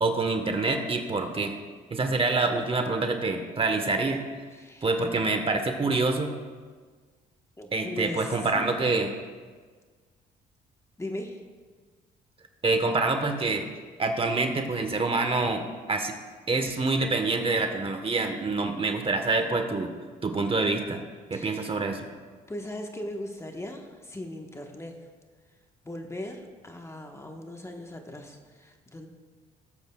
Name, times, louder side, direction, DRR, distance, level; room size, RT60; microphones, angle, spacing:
voice 1, 0.0-1.5 1.9-4.2 4.8-6.3 7.7-9.1 12.6-13.7 14.0-15.6 15.9-16.1 16.5-19.9 20.2-21.0 21.3-22.0, right 3 dB, 35° right, 5 dB, 1.2 m, -26 dB
voice 2, 4.5-5.0 7.6-8.8 11.0-11.4 21.3-21.8 22.5-25.0 25.8-29.1, left 1 dB, 15° left, 3 dB, 1.2 m, -39 dB
18.0 x 7.9 x 2.3 m, 1.5 s
supercardioid pair, 65°, 17 cm